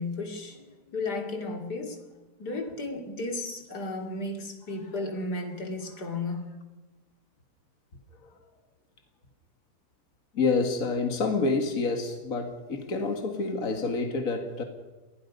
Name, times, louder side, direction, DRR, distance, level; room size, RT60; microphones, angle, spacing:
voice 1, 0.0-6.5, left 2 dB, 85° left, 3.3 m, -34 dB
voice 2, 10.3-14.6, left 4 dB, 60° left, 2.2 m, -28 dB
28.0 x 21.0 x 5.4 m
omnidirectional pair, 1.7 m